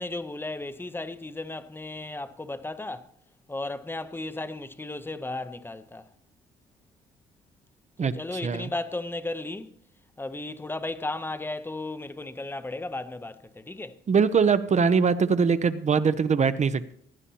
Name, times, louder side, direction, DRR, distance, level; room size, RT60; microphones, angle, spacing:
voice 1, 0.0-3.1 3.5-6.1 8.0-9.7 10.2-14.0, left 2 dB, 10° left, 0.7 m, -35 dB
voice 2, 14.1-16.9, right 5 dB, 35° right, 0.6 m, -22 dB
16.5 x 9.9 x 2.8 m
cardioid pair, 90°, 20 cm